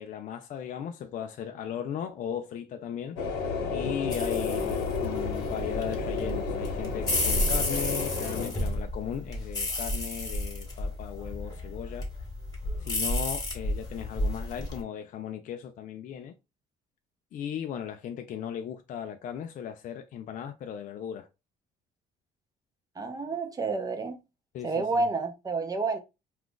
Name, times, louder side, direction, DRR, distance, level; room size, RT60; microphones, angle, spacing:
voice 1, 0.0-3.2 3.7-12.1 12.8-16.3 17.3-21.3 24.5-24.9, left 9 dB, 50° left, 0.4 m, -37 dB
sound 1, 3.2-8.5, left 4 dB, 90° left, 1.0 m, -31 dB
sound 2, 4.1-14.8, left 1 dB, 20° left, 1.1 m, -32 dB
voice 2, 23.0-24.2 24.6-26.0, right 3 dB, 20° right, 0.6 m, -29 dB
2.4 x 2.4 x 3.6 m
cardioid pair, 110°, 17 cm